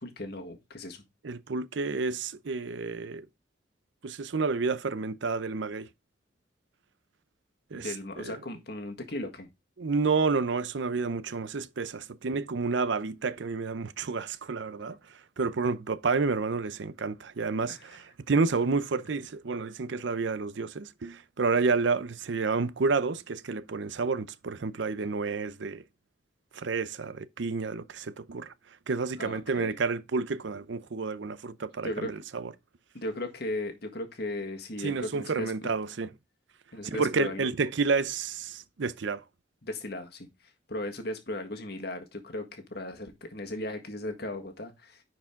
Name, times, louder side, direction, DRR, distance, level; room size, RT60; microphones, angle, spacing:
voice 1, 0.0-1.0 7.7-9.5 17.7-17.9 29.2-29.7 31.8-32.1 32.9-35.7 36.7-37.5 39.6-40.3 40.7-45.0, left 1 dB, 55° left, 1.6 m, -37 dB
voice 2, 1.2-3.3 4.0-5.9 7.7-8.3 9.8-15.0 15.4-25.8 26.5-28.5 28.9-32.5 34.8-36.1 36.8-39.2, right 4 dB, 70° right, 0.5 m, -30 dB
10.0 x 4.7 x 3.6 m
head